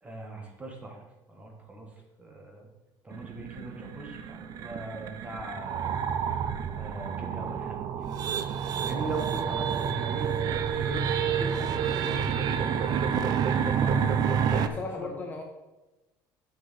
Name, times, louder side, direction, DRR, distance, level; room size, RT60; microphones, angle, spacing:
voice 1, 0.0-1.9 2.2-2.7 3.0-5.9 6.8-8.4 8.8-14.4 15.0-15.1, right 2 dB, 15° right, 1 dB, 1.5 m, -40 dB
sound 1, 3.1-14.7, right 7 dB, 45° right, 0.6 m, -29 dB
voice 2, 14.5-15.4, left 3 dB, 20° left, 2 dB, 0.6 m, -37 dB
10.0 x 5.9 x 4.2 m, 1.1 s
cardioid pair, 160°, 9 cm